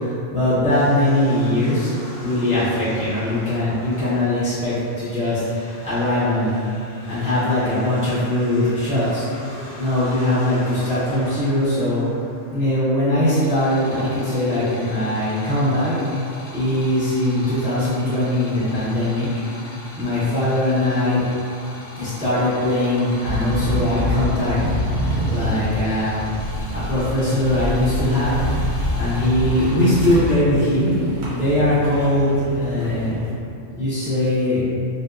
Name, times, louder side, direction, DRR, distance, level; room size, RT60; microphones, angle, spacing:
voice 1, 0.0-1.9 2.2-6.5 7.1-9.3 9.8-12.0 12.5-16.0 16.5-19.3 20.0-21.2 22.0-24.6 25.3-26.3 26.7-28.4 29.0-33.1 33.8-34.6, left 1 dB, 10° right, -13 dB, 0.4 m, -21 dB
sound 1, 0.7-12.8, left 1 dB, 60° left, 0.8 m, -40 dB
sound 2, 13.3-30.3, left 1 dB, 85° left, 1.0 m, -40 dB
sound 3, 23.2-33.3, equal, 65° right, 0.9 m, -26 dB
2.5 x 2.2 x 2.4 m, 2.4 s
omnidirectional pair, 1.3 m